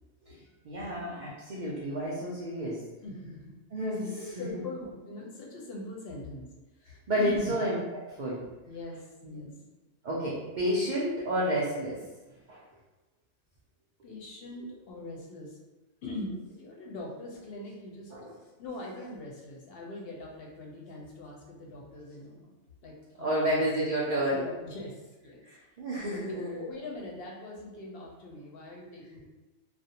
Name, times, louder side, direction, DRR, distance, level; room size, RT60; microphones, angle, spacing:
voice 1, 0.6-2.8 3.7-4.2 7.1-7.8 8.1-8.4 9.2-9.5 10.0-12.0 12.5-12.6 18.1-18.4 23.2-24.4 25.4-26.6, equal, 75° right, -6 dB, 0.4 m, -30 dB
voice 2, 3.0-3.4 4.2-6.5 6.8-7.5 8.7-9.5 14.0-15.6 16.0-18.1 18.6-22.5 22.8-23.9 24.3-25.4 26.1-29.2, left 2 dB, 60° left, -2 dB, 0.7 m, -41 dB
2.4 x 2.0 x 2.8 m, 1.1 s
omnidirectional pair, 1.4 m